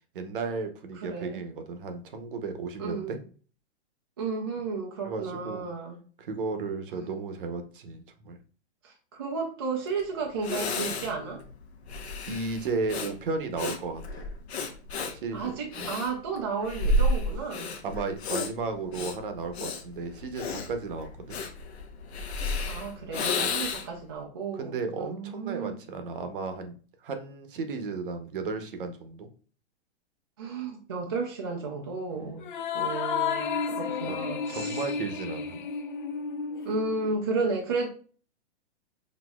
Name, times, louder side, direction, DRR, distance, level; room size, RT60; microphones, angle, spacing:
voice 1, 0.1-3.2 5.0-5.6 6.2-8.4 12.3-14.0 15.1-15.9 17.8-21.4 23.4-23.5 24.5-26.8 27.0-29.3 32.1-32.5 34.1-34.2 34.5-35.5, right 4 dB, 50° right, 7 dB, 0.8 m, -34 dB
voice 2, 1.0-1.4 2.8-3.2 4.2-6.0 6.9-7.1 8.8-11.4 15.3-17.7 22.7-25.7 30.4-32.5 32.7-34.8 36.6-37.9, right 4 dB, 25° right, -2 dB, 0.4 m, -33 dB
Breathing, 10.0-10.1 10.4-24.0, left 1 dB, 65° left, 1.0 m, -31 dB
sound 1, 32.4-37.1, left 6 dB, 45° left, 0.5 m, -32 dB
6.1 x 2.7 x 2.3 m, 0.40 s
hypercardioid pair, 170°, 34 cm